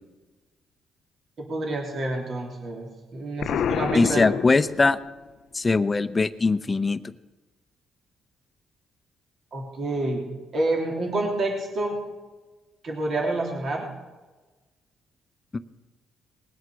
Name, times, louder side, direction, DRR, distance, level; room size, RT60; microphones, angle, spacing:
voice 1, 1.4-4.2 9.5-10.2 10.5-12.0 12.8-13.8, right 2 dB, 55° right, 0 dB, 3.0 m, -28 dB
Explosion, 3.4-5.2, left 9 dB, 70° left, 0.4 m, -28 dB
voice 2, 3.9-5.0 5.5-7.0, left 3 dB, 25° left, 13 dB, 0.7 m, -21 dB
20.0 x 8.1 x 6.3 m, 1.2 s
cardioid pair, 90°, 0 cm